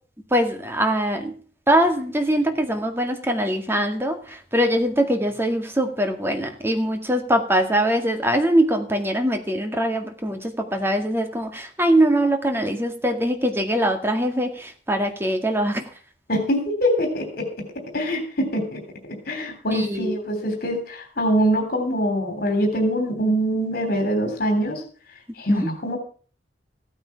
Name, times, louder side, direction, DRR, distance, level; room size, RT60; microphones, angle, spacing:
voice 1, 0.3-1.3 1.7-15.9 19.7-20.2 25.5-25.7, right 1 dB, 15° right, 5 dB, 1.9 m, -22 dB
voice 2, 16.3-17.4 17.9-18.8 19.1-24.8 25.4-26.0, equal, 60° left, 4 dB, 3.4 m, -23 dB
15.0 x 9.1 x 5.7 m, 0.42 s
head